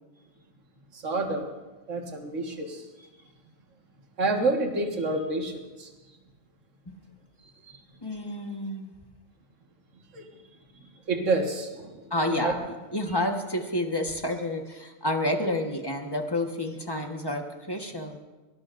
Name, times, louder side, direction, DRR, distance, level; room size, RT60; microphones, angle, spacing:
voice 1, 0.9-1.6 1.9-3.1 4.2-5.9 7.6-7.8 10.1-10.3 10.7-12.6, right 2 dB, 65° right, 2 dB, 2.0 m, -29 dB
voice 2, 8.0-8.9 12.1-12.5 12.9-18.2, left 1 dB, 20° left, 3 dB, 1.3 m, -29 dB
23.0 x 19.0 x 2.6 m, 1.2 s
omnidirectional pair, 1.4 m